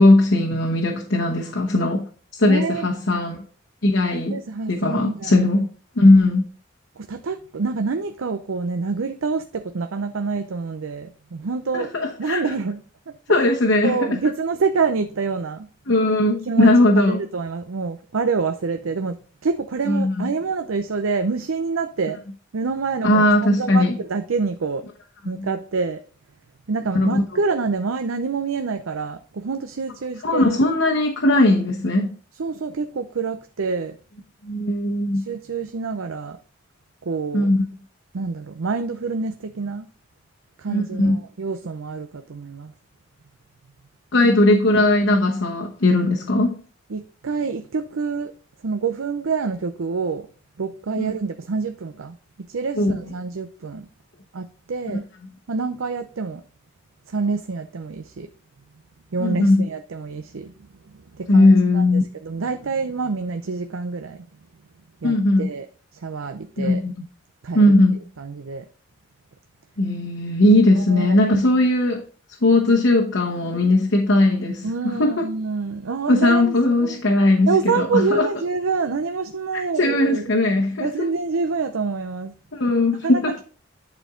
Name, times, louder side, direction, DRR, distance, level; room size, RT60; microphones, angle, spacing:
voice 1, 0.0-3.4 3.8-4.4 4.7-5.7 6.0-6.4 11.7-12.5 13.3-14.2 15.9-17.2 19.9-20.3 23.0-24.0 25.4-25.5 26.9-27.2 30.2-32.1 34.4-35.2 37.3-37.7 40.7-41.2 44.1-46.6 51.0-51.1 52.8-53.0 54.9-55.0 59.2-59.7 61.3-62.0 65.0-65.5 66.6-67.0 67.5-68.0 69.8-72.0 72.4-75.3 76.1-78.3 79.8-81.1 82.5-83.4, left 2 dB, 65° left, 1.1 m, -18 dB
voice 2, 2.5-2.9 4.3-5.5 7.0-11.9 12.2-12.8 13.3-13.4 13.8-15.7 16.5-16.7 17.1-22.2 22.5-24.8 25.2-26.0 26.7-30.6 32.4-34.0 35.3-36.4 37.0-37.5 38.1-39.9 40.6-42.7 44.2-44.3 46.9-48.3 48.6-50.3 50.6-53.9 54.3-55.0 55.5-56.4 57.1-58.3 59.1-60.5 61.2-61.8 62.2-64.3 65.0-65.7 65.9-66.8 67.4-67.8 68.2-68.7 70.8-71.2 74.6-76.5 76.8-77.0 77.5-80.3 80.8-82.3 83.0-83.2, right 4 dB, 80° right, 0.6 m, -26 dB
10.5 x 4.4 x 3.8 m
head